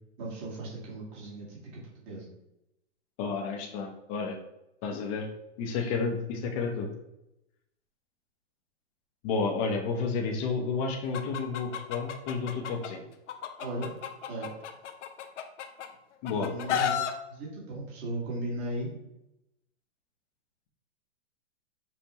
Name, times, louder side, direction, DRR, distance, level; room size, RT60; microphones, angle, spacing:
voice 1, 0.2-2.3 13.6-13.9 14.3-14.5 16.4-17.0 17.3-18.9, right 1 dB, 35° right, -4 dB, 1.4 m, -36 dB
voice 2, 3.2-4.4 4.8-5.3 5.6-6.9 9.2-13.0 16.2-17.0, left 4 dB, 30° left, 1 dB, 0.5 m, -31 dB
Chicken rooster, 11.1-12.9 13.3-15.9 16.2-17.1, left 9 dB, 90° left, 0.6 m, -32 dB
5.4 x 2.1 x 2.8 m, 0.88 s
hypercardioid pair, 140°, 35 cm